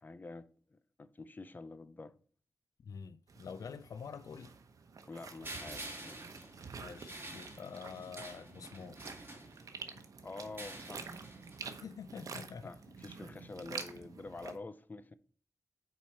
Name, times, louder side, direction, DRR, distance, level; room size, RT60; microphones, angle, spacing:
voice 1, 0.0-2.2 5.1-6.2 9.9-10.0 10.2-11.3 12.6-15.1, left 3 dB, 30° left, 0.6 m, -48 dB
voice 2, 2.8-4.5 6.8-9.0 11.7-12.7, left 6 dB, 85° left, 0.4 m, -47 dB
sound 1, 3.3-14.6, right 5 dB, 80° right, 0.9 m, -49 dB
sound 2, 5.4-9.9 10.4-11.7, right 1 dB, 40° right, 2.6 m, -48 dB
7.0 x 4.8 x 4.5 m
wide cardioid pair, 90°, 6 cm